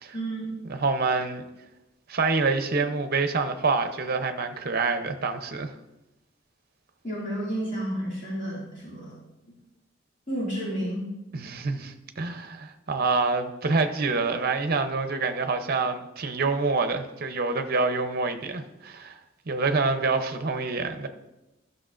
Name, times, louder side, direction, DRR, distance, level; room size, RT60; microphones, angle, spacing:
voice 1, 0.1-0.5 7.0-9.2 10.3-11.1, right 1 dB, 40° left, -7 dB, 2.4 m, -31 dB
voice 2, 0.7-1.4 2.1-5.7 11.3-19.2 19.5-21.1, right 4 dB, 50° right, 8 dB, 0.7 m, -26 dB
12.5 x 6.3 x 2.5 m, 0.97 s
head